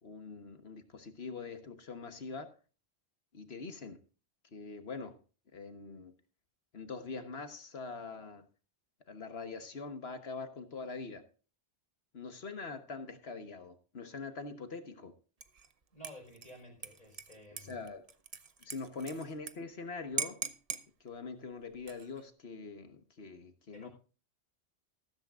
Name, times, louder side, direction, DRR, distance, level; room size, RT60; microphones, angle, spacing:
voice 1, 0.0-2.5 3.3-4.0 4.5-5.2 5.5-6.1 6.7-8.5 9.1-11.2 12.1-15.1 17.5-18.1 18.6-20.4 21.0-23.9, left 4 dB, 65° left, 8 dB, 1.5 m, -43 dB
Dishes pots and pans / Liquid, 15.4-15.7 16.0-19.5 19.8-19.9 20.2-20.9 21.7-22.2, right 6 dB, 40° right, 0.7 m, -41 dB
voice 2, 15.9-17.8 23.7-23.9, equal, 40° left, 1 dB, 5.0 m, -52 dB
14.5 x 13.5 x 2.4 m, 0.36 s
omnidirectional pair, 1.1 m